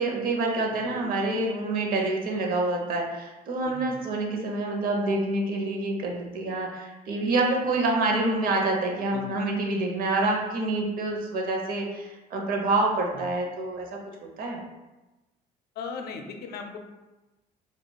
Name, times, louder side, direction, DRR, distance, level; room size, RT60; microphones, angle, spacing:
voice 1, 0.0-14.6, right 2 dB, 60° right, 0 dB, 0.8 m, -27 dB
voice 2, 15.8-16.8, left 5 dB, 70° left, 4 dB, 0.5 m, -38 dB
4.8 x 2.4 x 2.2 m, 1.1 s
cardioid pair, 110°, 17 cm